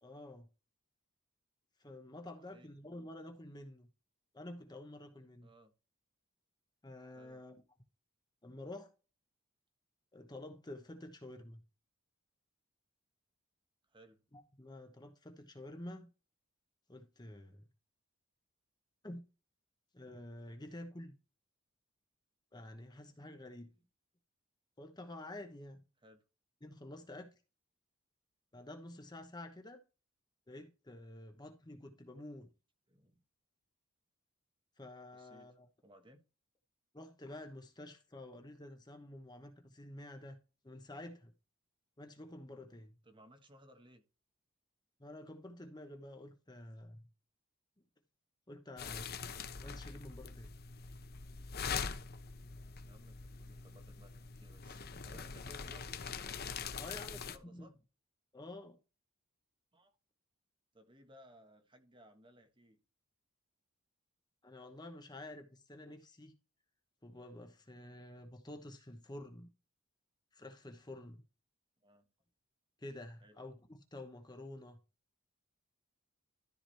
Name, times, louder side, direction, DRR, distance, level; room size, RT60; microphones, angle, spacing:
voice 1, 0.0-0.5 1.8-3.9 4.3-5.5 6.8-7.6 8.4-8.9 10.1-11.6 14.3-16.1 16.9-17.7 19.0-19.2 19.9-21.2 22.5-23.7 24.8-25.8 26.6-27.3 28.5-29.8 30.5-32.5 34.8-35.7 36.9-40.4 40.6-41.3 42.0-43.0 45.0-47.1 48.5-49.2 49.6-50.6 56.8-57.2 57.5-57.7 58.3-58.8 64.4-66.3 67.0-69.5 70.3-71.2 72.8-74.8, left 1 dB, 20° left, 1.1 m, -49 dB
voice 2, 2.2-2.7 5.4-5.7 7.1-7.4 13.9-14.2 26.0-26.2 32.9-33.2 35.1-36.3 43.0-44.0 52.8-56.0 56.9-57.7 59.7-59.9 60.7-62.8 71.8-72.1 73.2-73.4, equal, 25° right, 1.5 m, -61 dB
sound 1, 48.8-57.4, left 6 dB, 50° left, 0.8 m, -43 dB
13.5 x 4.9 x 3.4 m
head